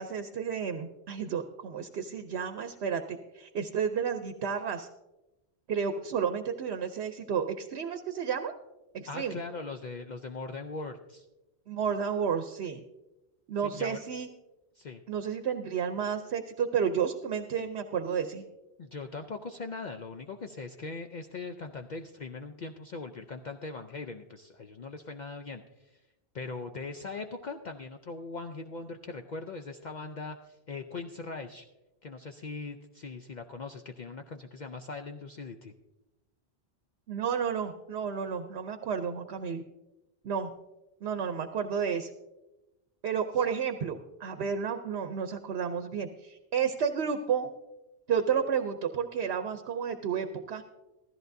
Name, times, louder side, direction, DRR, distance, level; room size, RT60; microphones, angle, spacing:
voice 1, 0.0-4.9 5.7-8.5 8.9-9.4 11.7-12.8 13.5-14.3 15.1-18.4 37.1-39.6 40.2-40.5 41.0-42.1 43.0-47.5 48.1-50.6, right 7 dB, 75° right, 7 dB, 0.9 m, -31 dB
voice 2, 9.1-11.2 13.6-14.0 14.8-15.0 18.8-26.0 26.3-31.7 32.0-35.7, left 3 dB, 50° left, 5 dB, 0.6 m, -40 dB
15.0 x 13.5 x 2.6 m, 1.0 s
omnidirectional pair, 1.1 m